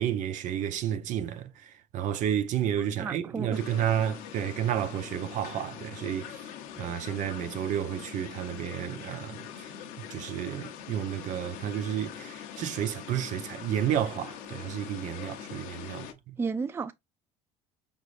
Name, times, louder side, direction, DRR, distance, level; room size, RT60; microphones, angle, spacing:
voice 1, 0.0-6.4 6.8-9.7 10.1-16.4, right 10 dB, 60° right, 0.8 m, -31 dB
voice 2, 3.0-3.6 16.4-16.9, right 4 dB, 15° right, 0.4 m, -32 dB
sound 1, 3.5-16.1, left 9 dB, 75° left, 0.8 m, -43 dB
5.0 x 3.7 x 2.5 m
supercardioid pair, 95°, 14 cm